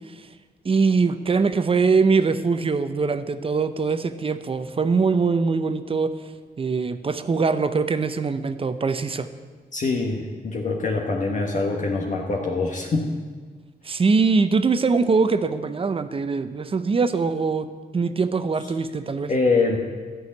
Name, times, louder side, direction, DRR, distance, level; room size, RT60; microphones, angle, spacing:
voice 1, 0.6-6.1 6.6-9.3 13.8-17.7 17.9-19.3, right 4 dB, 35° right, 11 dB, 0.7 m, -22 dB
voice 2, 9.7-13.1 19.3-19.8, left 3 dB, 50° left, 1 dB, 1.4 m, -24 dB
12.5 x 6.3 x 9.5 m, 1.5 s
wide cardioid pair, 130°, 16 cm